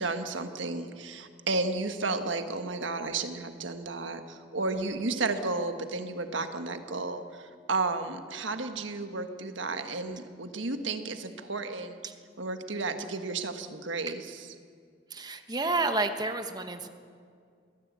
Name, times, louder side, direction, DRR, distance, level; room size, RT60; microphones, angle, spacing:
voice 1, 0.0-7.2 7.7-12.0 12.4-14.5, right 3 dB, 85° right, 7 dB, 1.5 m, -32 dB
voice 2, 15.1-16.9, right 3 dB, 20° right, 7 dB, 1.1 m, -30 dB
23.5 x 16.5 x 8.3 m, 2.2 s
head